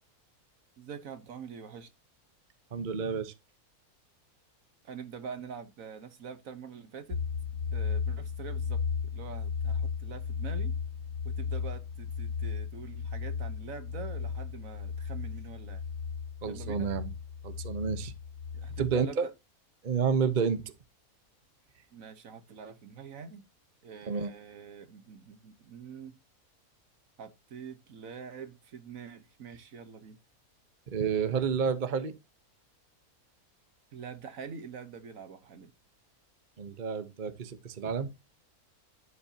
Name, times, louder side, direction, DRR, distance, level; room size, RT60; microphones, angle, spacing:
voice 1, 0.8-1.9 4.8-7.2 7.7-10.7 11.2-15.8 16.4-16.9 18.5-19.3 21.9-23.4 23.8-26.1 27.2-30.2 33.9-35.7, right 6 dB, 65° right, 1.5 m, -45 dB
voice 2, 2.7-3.3 16.4-17.1 17.4-18.1 18.8-19.3 19.8-20.7 24.1-24.3 30.9-32.1 36.6-38.1, right 6 dB, 35° right, 1.0 m, -30 dB
sound 1, 7.1-19.0, left 6 dB, 60° left, 1.3 m, -35 dB
11.0 x 8.6 x 2.8 m
omnidirectional pair, 1.5 m